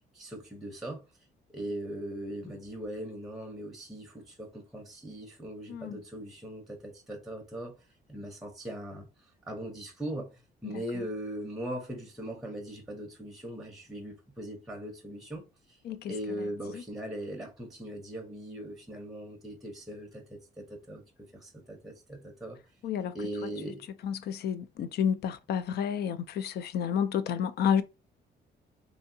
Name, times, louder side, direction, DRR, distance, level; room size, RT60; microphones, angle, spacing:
voice 1, 0.1-1.0 1.5-7.7 8.1-9.1 9.5-15.4 16.1-21.0 21.3-22.6 23.1-23.8, right 1 dB, ahead, 0.7 m, -39 dB
voice 2, 5.7-6.0 10.7-10.8 15.8-16.1 16.7-16.8 22.8-23.2 24.0-27.8, left 8 dB, 60° left, 0.4 m, -30 dB
2.7 x 2.6 x 2.6 m
cardioid pair, 135°, 19 cm